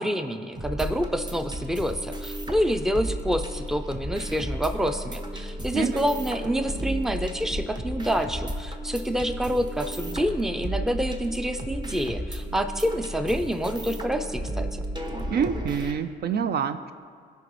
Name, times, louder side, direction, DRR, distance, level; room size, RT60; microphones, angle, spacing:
voice 1, 0.0-14.8, equal, ahead, 8 dB, 0.5 m, -27 dB
sound 1, 0.6-15.9, right 1 dB, 20° right, 0.9 m, -33 dB
voice 2, 15.3-16.9, right 7 dB, 55° right, 11 dB, 0.4 m, -27 dB
15.5 x 5.3 x 3.1 m, 2.1 s
cardioid pair, 90°, 20 cm